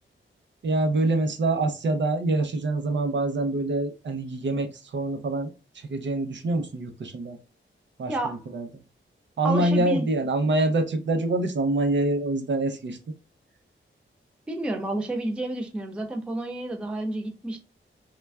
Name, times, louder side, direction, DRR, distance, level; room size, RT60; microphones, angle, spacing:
voice 1, 0.6-5.5 5.7-7.4 8.0-8.7 9.4-13.0, right 2 dB, 60° right, 0.5 m, -25 dB
voice 2, 8.1-8.4 9.4-10.1 14.5-17.6, right 1 dB, 5° right, 0.3 m, -30 dB
3.2 x 2.3 x 2.2 m
wide cardioid pair, 140°, 21 cm